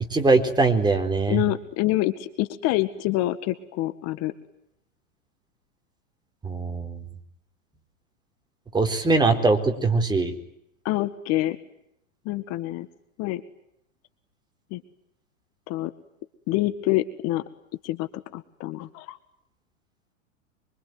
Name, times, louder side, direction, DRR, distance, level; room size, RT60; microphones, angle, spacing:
voice 1, 0.0-1.4 6.4-7.0 8.7-10.3, right 3 dB, 10° right, 5 dB, 4.2 m, -21 dB
voice 2, 1.3-4.3 10.9-11.6 12.3-12.9 13.2-13.4 14.7-14.8 15.7-15.9 16.5-17.4 17.8-19.2, left 16 dB, 40° left, 10 dB, 1.9 m, -26 dB
25.5 x 24.5 x 9.5 m, 0.76 s
hypercardioid pair, 130°, 39 cm